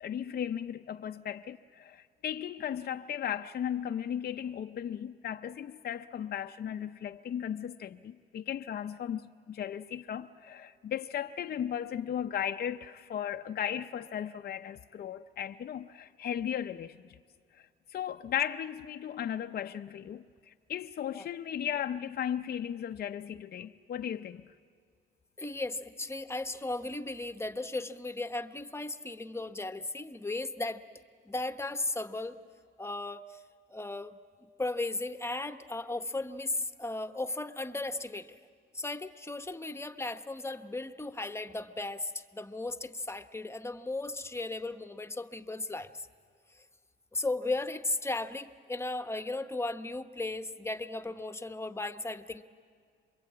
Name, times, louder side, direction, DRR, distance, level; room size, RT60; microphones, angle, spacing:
voice 1, 0.0-17.2 17.5-24.4, left 9 dB, 50° left, 0.6 m, -36 dB
voice 2, 25.4-30.8 31.2-32.4 32.8-33.4 33.7-38.4 38.7-46.1 47.1-52.4, left 2 dB, 15° left, 1.0 m, -36 dB
26.5 x 22.5 x 8.5 m
cardioid pair, 90°, 20 cm